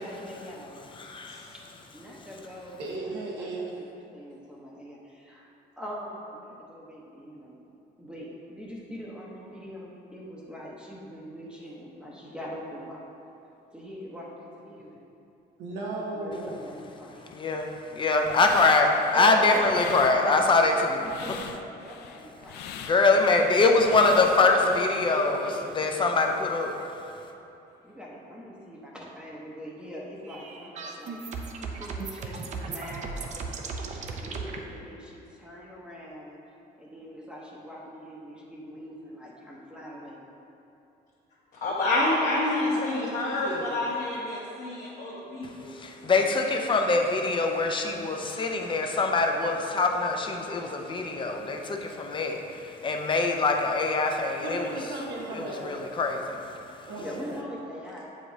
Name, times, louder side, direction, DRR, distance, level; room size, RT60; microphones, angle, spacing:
voice 1, 0.0-0.8 1.5-5.5 5.8-7.6 8.0-13.0 13.7-15.0 16.1-17.2 21.0-22.7 27.8-31.2 31.6-33.3 33.6-36.4 36.8-40.2 56.7-58.1, equal, 5° right, -5 dB, 0.8 m, -43 dB
voice 2, 1.0-1.5 17.3-21.3 22.8-26.8 45.5-54.7 55.3-56.9, left 3 dB, 30° left, 3 dB, 0.6 m, -24 dB
voice 3, 2.8-3.8 15.6-16.6 19.1-20.6 23.9-25.7 42.7-43.7 54.4-55.8 56.9-57.4, right 2 dB, 85° right, -2 dB, 1.1 m, -35 dB
sound 1, 18.2-25.0, left 8 dB, 80° left, 0.4 m, -43 dB
sound 2, 30.2-34.6, right 4 dB, 45° right, 0.6 m, -36 dB
voice 4, 41.6-45.7, left 2 dB, 55° left, -8 dB, 1.1 m, -28 dB
7.3 x 4.9 x 2.7 m, 2.8 s
cardioid pair, 110°, 17 cm